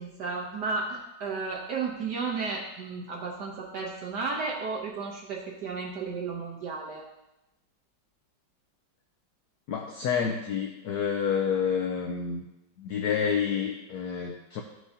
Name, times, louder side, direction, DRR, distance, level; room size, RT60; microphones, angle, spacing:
voice 1, 0.0-7.1, right 4 dB, 65° right, -2 dB, 1.5 m, -33 dB
voice 2, 9.7-12.5 12.8-14.6, left 7 dB, 70° left, 2 dB, 1.0 m, -29 dB
13.0 x 4.6 x 2.7 m, 0.92 s
omnidirectional pair, 2.0 m